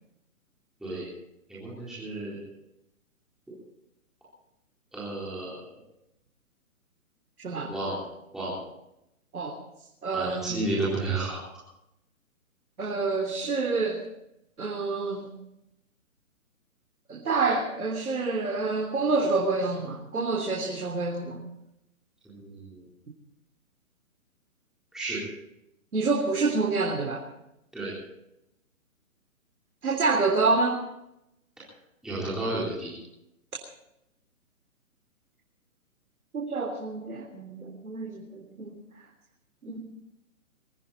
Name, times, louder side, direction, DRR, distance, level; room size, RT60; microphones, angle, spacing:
voice 1, 0.8-1.1 1.5-2.4 4.9-5.7 7.7-8.0 8.3-8.5 10.1-11.4 22.2-22.8 24.9-25.2 27.7-27.9 32.0-32.9, right 2 dB, ahead, -11 dB, 4.0 m, -32 dB
voice 2, 10.0-10.6 12.8-14.0 14.6-15.3 17.1-21.4 25.9-27.2 29.8-30.8 36.3-38.7 39.6-39.8, right 3 dB, 80° right, 1 dB, 3.6 m, -27 dB
22.0 x 15.0 x 4.2 m, 0.84 s
hypercardioid pair, 165°, 42 cm